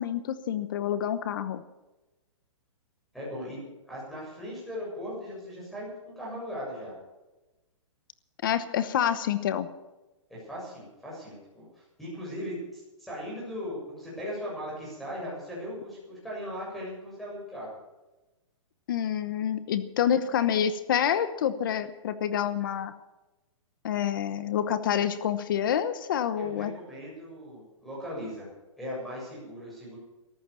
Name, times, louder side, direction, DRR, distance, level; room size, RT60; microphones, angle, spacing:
voice 1, 0.0-1.6 8.4-9.7 18.9-22.9 23.8-26.7, left 9 dB, 40° left, 13 dB, 1.0 m, -27 dB
voice 2, 3.1-6.9 10.3-17.8 26.3-28.5 28.8-30.0, equal, ahead, -6 dB, 7.2 m, -38 dB
14.5 x 13.5 x 7.0 m, 1.1 s
hypercardioid pair, 170°, 16 cm